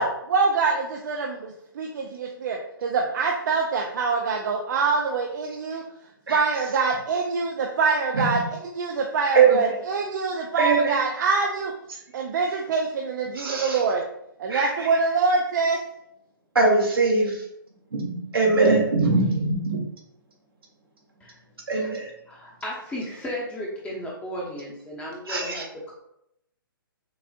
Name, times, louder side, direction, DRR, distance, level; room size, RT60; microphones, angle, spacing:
voice 1, 0.0-5.8 6.3-8.4 8.8-11.7 12.1-14.1 14.4-15.8, right 4 dB, 55° right, 1 dB, 0.5 m, -25 dB
voice 2, 9.3-9.7 10.6-11.0 13.3-13.8 14.5-14.9 16.5-17.4 17.9-19.8 21.7-22.1 25.3-25.6, right 3 dB, 80° right, -1 dB, 1.3 m, -22 dB
voice 3, 22.3-25.9, equal, 10° left, -4 dB, 1.0 m, -35 dB
6.0 x 2.4 x 2.4 m, 0.76 s
figure-of-eight pair, 130°, 12 cm